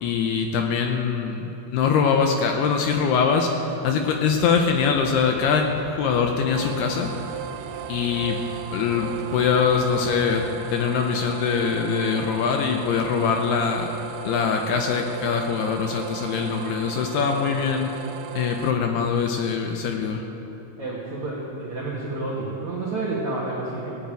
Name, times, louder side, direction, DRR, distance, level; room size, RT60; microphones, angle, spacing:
voice 1, 0.0-5.7 6.0-7.2 7.9-8.4 8.7-10.4 10.7-13.9 14.2-17.9 18.3-20.2, left 6 dB, 80° left, 3 dB, 2.3 m, -23 dB
sound 1, 4.2-10.5, left 2 dB, 55° left, 3.9 m, -46 dB
sound 2, 6.5-18.7, right 10 dB, 85° right, 3.3 m, -36 dB
voice 2, 20.8-24.0, right 2 dB, 55° right, -6 dB, 2.2 m, -30 dB
17.5 x 8.6 x 9.1 m, 3.0 s
omnidirectional pair, 5.7 m